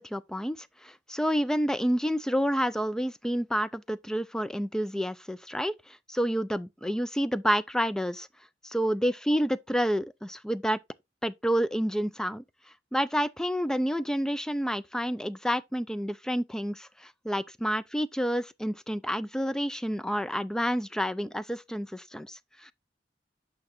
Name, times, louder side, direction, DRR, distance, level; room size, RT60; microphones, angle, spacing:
voice 1, 0.0-8.3 8.6-10.8 11.2-12.4 12.9-22.7, equal, 5° left, 0.3 m, -29 dB
8.6 x 5.7 x 3.0 m
head